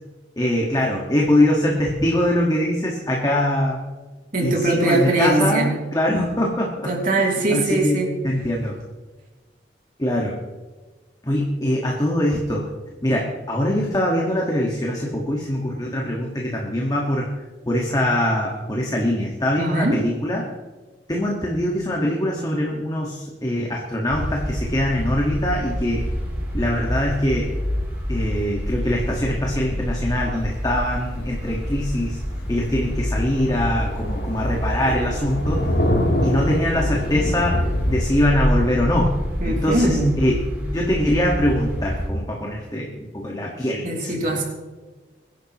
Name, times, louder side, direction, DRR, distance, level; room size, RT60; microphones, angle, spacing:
voice 1, 0.4-3.8 4.4-6.9 7.5-8.8 10.0-10.4 11.2-12.7 13.0-17.3 17.7-20.4 21.1-26.0 26.5-27.5 28.1-32.2 32.5-35.7 36.2-39.1 39.4-44.4, left 1 dB, 20° left, -2 dB, 1.6 m, -23 dB
voice 2, 4.3-5.7 6.9-8.1 19.6-20.0 39.4-40.2 43.8-44.4, right 2 dB, 50° right, 0 dB, 2.8 m, -21 dB
sound 1, 24.1-42.1, equal, 10° right, 5.2 m, -27 dB
Thunder, 31.0-31.2 31.6-31.7 32.1-32.2 32.5-32.6 32.8-38.0, left 1 dB, 80° left, 2.6 m, -25 dB
24.0 x 10.5 x 3.0 m, 1.3 s
head